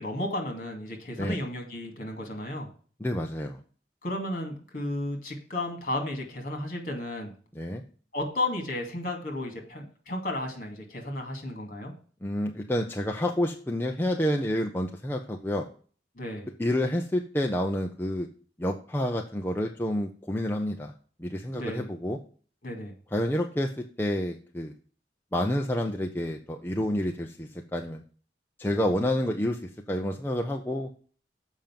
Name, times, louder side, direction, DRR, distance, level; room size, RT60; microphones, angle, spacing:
voice 1, 0.0-2.7 4.0-7.3 8.1-11.9 16.2-16.5 21.5-21.9 22.6-22.9, left 1 dB, 45° left, 3 dB, 2.4 m, -33 dB
voice 2, 3.0-3.6 7.5-7.8 12.2-15.7 16.6-18.3 18.6-20.9 21.2-22.2 23.1-24.7 25.3-28.0 28.6-30.9, left 1 dB, 10° left, 2 dB, 0.6 m, -29 dB
7.3 x 5.2 x 7.3 m, 0.42 s
head